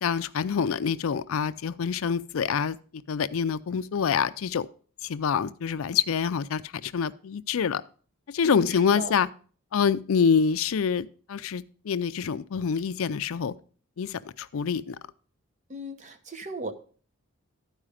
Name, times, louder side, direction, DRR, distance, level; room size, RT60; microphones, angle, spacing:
voice 1, 0.0-4.7 5.0-7.8 8.3-9.3 9.7-13.5 14.0-15.0, left 6 dB, 80° left, 0.4 m, -26 dB
voice 2, 8.4-9.1 15.7-16.7, right 1 dB, 35° right, 0.8 m, -37 dB
12.5 x 4.9 x 4.9 m
head